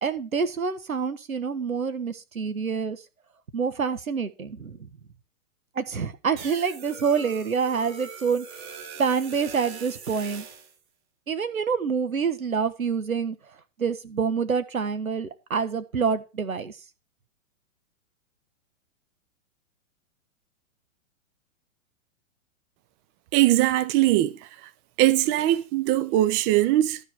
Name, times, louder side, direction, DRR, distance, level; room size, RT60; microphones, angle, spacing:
voice 1, 0.0-3.0 3.5-4.8 5.7-8.4 9.0-10.4 11.3-13.4 13.8-16.7, right 6 dB, 85° right, 1.4 m, -27 dB
sound 1, 6.4-10.7, right 6 dB, 55° right, 4.8 m, -42 dB
voice 2, 23.3-24.7 25.0-27.0, right 14 dB, 25° right, 0.7 m, -21 dB
12.5 x 5.1 x 6.0 m
hypercardioid pair, 115°, 40 cm